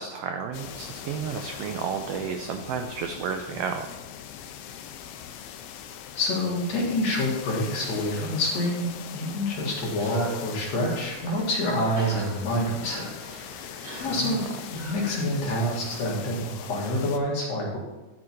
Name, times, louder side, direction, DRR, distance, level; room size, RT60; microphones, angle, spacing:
voice 1, 0.0-3.9 14.1-14.4, right 6 dB, 85° right, 5 dB, 1.4 m, -32 dB
sound 1, 0.5-17.2, left 9 dB, 80° left, 1.4 m, -41 dB
voice 2, 6.1-13.1 13.4-14.4 14.7-17.8, left 1 dB, 65° left, -3 dB, 2.9 m, -27 dB
Cough, 9.9-15.7, right 2 dB, 70° right, 2.7 m, -43 dB
11.0 x 4.7 x 4.2 m, 1.1 s
omnidirectional pair, 3.4 m